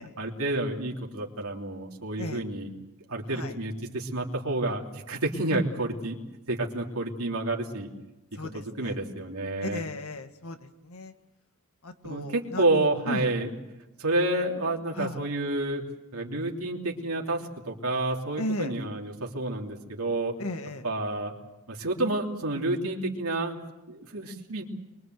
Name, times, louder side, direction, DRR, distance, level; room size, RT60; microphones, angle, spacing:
voice 1, 0.2-2.7 3.1-6.2 6.5-7.9 8.4-9.8 12.0-13.5 14.0-15.8 16.1-20.3 20.8-21.3 21.7-23.6 23.9-24.6, right 2 dB, 75° right, 0 dB, 3.3 m, -29 dB
voice 2, 8.3-9.0 9.6-11.1 11.8-12.7 13.1-13.2 14.9-15.2 18.4-18.7 20.4-20.8, left 1 dB, 70° left, 8 dB, 1.8 m, -36 dB
24.0 x 22.5 x 7.9 m, 0.98 s
head